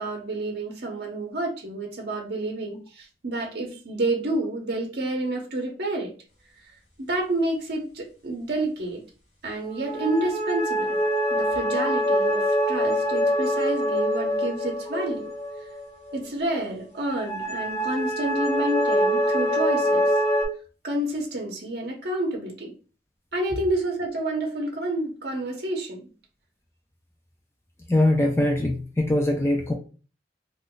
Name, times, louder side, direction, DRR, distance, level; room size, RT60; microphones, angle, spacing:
voice 1, 0.0-6.1 7.1-9.0 9.4-11.0 11.3-15.3 16.1-20.1 20.8-22.7 23.3-26.1, right 1 dB, 60° right, 1 dB, 0.7 m, -29 dB
sound 1, 9.7-16.3 17.0-20.5, equal, 35° left, 1.2 m, -25 dB
voice 2, 27.9-29.7, left 1 dB, 15° left, 1 dB, 0.4 m, -22 dB
2.5 x 2.2 x 3.7 m, 0.36 s
head